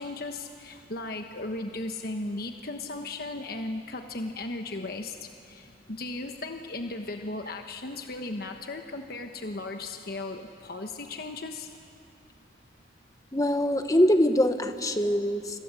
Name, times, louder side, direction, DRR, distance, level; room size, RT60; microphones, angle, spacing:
voice 1, 0.0-11.7, left 2 dB, 55° left, 5 dB, 1.2 m, -36 dB
voice 2, 13.3-15.6, equal, 20° left, 8 dB, 1.2 m, -23 dB
29.0 x 25.5 x 7.7 m, 2.5 s
head